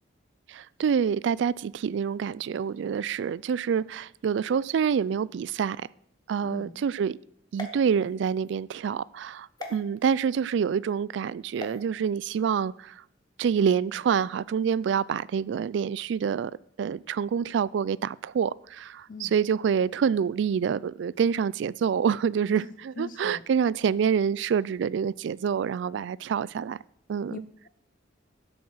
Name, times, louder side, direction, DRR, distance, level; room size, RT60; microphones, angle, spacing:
voice 1, 0.5-5.8 6.3-7.2 7.5-13.0 13.4-16.5 16.8-22.6 23.0-26.8 27.1-27.4, right 7 dB, 70° right, 0.3 m, -27 dB
voice 2, 6.4-6.9 19.1-19.3 22.5-23.4 27.3-27.7, left 3 dB, 45° left, 0.5 m, -41 dB
sound 1, 7.5-8.5 9.6-9.8 11.5-11.8, left 2 dB, 25° left, 1.5 m, -41 dB
12.0 x 7.2 x 6.2 m
head